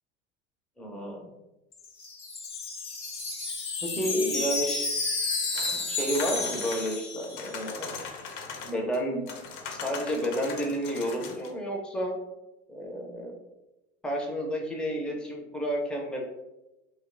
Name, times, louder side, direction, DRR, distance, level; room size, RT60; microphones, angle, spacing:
voice 1, 0.8-1.3 3.8-4.9 5.7-8.0 8.6-9.3 9.7-12.2 12.7-13.3 14.0-16.2, equal, 5° left, 0 dB, 0.4 m, -31 dB
Wind chime, 1.7-7.7, left 3 dB, 75° left, 0.8 m, -32 dB
sound 1, 5.5-9.0 9.3-11.5, left 5 dB, 55° left, 0.5 m, -40 dB
2.7 x 2.2 x 2.5 m, 0.97 s
hypercardioid pair, 80°, 33 cm